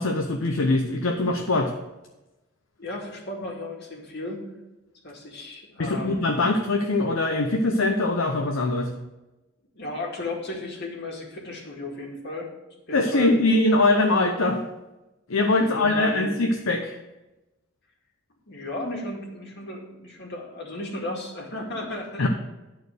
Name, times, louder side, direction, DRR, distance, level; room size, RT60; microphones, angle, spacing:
voice 1, 0.0-1.7 5.8-8.9 12.9-14.6 15.3-17.0 22.2-22.3, left 2 dB, 70° left, 2 dB, 0.7 m, -22 dB
voice 2, 2.8-4.4 5.0-6.3 9.8-12.5 12.9-13.4 15.6-16.3 18.5-22.3, left 1 dB, 55° left, -1 dB, 2.1 m, -34 dB
10.5 x 4.5 x 6.4 m, 1.0 s
head